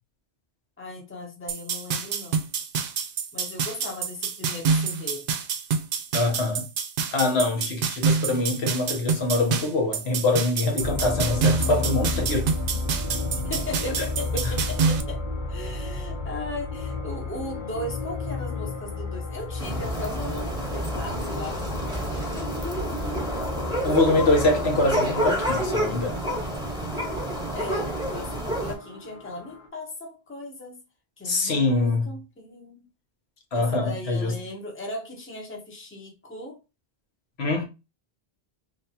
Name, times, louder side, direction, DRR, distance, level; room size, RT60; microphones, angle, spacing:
voice 1, 0.8-2.4 3.3-5.3 13.3-15.2 15.5-23.2 27.5-30.8 31.2-32.8 33.5-36.6, left 1 dB, 15° left, 0.9 m, -37 dB
sound 1, 1.5-15.0, right 5 dB, 65° right, 0.7 m, -27 dB
voice 2, 6.1-6.7 7.1-12.5 23.8-26.2 31.2-32.1 33.5-34.3 37.4-37.7, left 2 dB, 80° left, 1.2 m, -24 dB
sound 2, 10.8-29.7, left 3 dB, 50° left, 0.9 m, -33 dB
sound 3, 19.6-28.7, right 1 dB, 5° right, 1.1 m, -29 dB
3.4 x 2.9 x 2.8 m
omnidirectional pair, 1.1 m